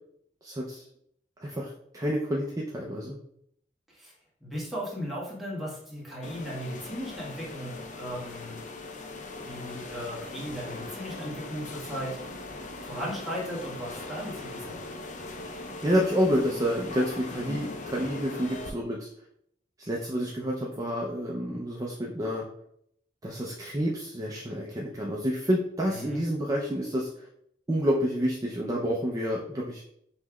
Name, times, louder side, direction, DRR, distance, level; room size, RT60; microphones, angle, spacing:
voice 1, 0.4-0.8 1.4-3.2 15.8-19.1 19.8-22.4 23.2-27.3 27.7-29.8, equal, 20° right, -3 dB, 0.5 m, -29 dB
voice 2, 4.4-8.6 9.4-12.2 12.5-14.8 25.9-26.2, equal, ahead, -6 dB, 1.4 m, -37 dB
sound 1, 6.2-18.7, left 2 dB, 45° left, 0.5 m, -40 dB
5.5 x 3.1 x 2.3 m, 0.70 s
head